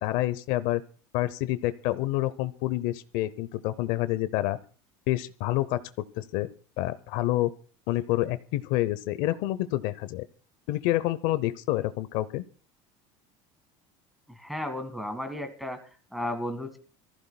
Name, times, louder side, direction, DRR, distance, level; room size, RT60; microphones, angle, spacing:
voice 1, 0.0-0.8 1.1-4.6 5.1-5.8 6.2-6.5 6.8-7.5 7.9-10.2 10.7-12.4, left 16 dB, 70° left, 15 dB, 0.7 m, -28 dB
voice 2, 14.4-16.8, left 1 dB, ahead, 8 dB, 1.8 m, -33 dB
25.5 x 15.0 x 2.3 m, 0.39 s
cardioid pair, 145°, 15 cm